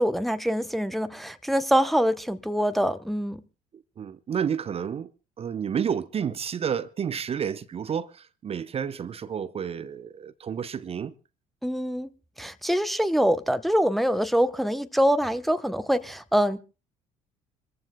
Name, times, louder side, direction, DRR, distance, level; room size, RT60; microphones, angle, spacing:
voice 1, 0.0-3.4 11.6-12.1 12.4-16.6, equal, ahead, 0.8 m, -24 dB
voice 2, 4.0-5.1 5.4-11.1, right 7 dB, 30° right, 0.7 m, -30 dB
27.0 x 14.5 x 2.2 m
figure-of-eight pair, 55°, 19 cm